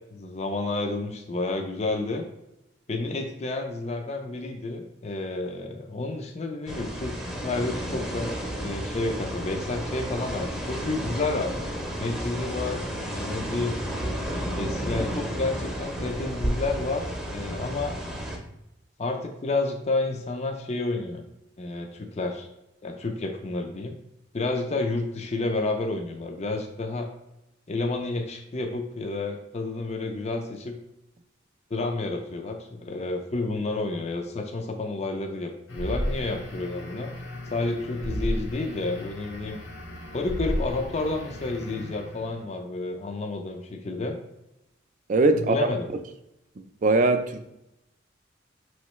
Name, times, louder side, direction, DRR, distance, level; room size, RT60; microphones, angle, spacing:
voice 1, 0.1-2.2 2.9-7.2 7.4-11.5 12.0-13.7 14.5-18.0 19.0-21.2 21.6-22.5 22.8-23.9 24.3-27.1 27.7-30.7 31.7-37.1 37.5-39.6 40.1-44.2 45.3-45.9, left 2 dB, 35° left, 3 dB, 0.5 m, -30 dB
sound 1, 6.7-18.4, equal, 5° right, 0.7 m, -32 dB
sound 2, 35.7-42.4, equal, 80° left, 0.8 m, -34 dB
voice 2, 45.1-45.7 46.6-47.5, right 2 dB, 45° right, 8 dB, 0.4 m, -22 dB
5.4 x 3.1 x 3.0 m, 0.87 s
head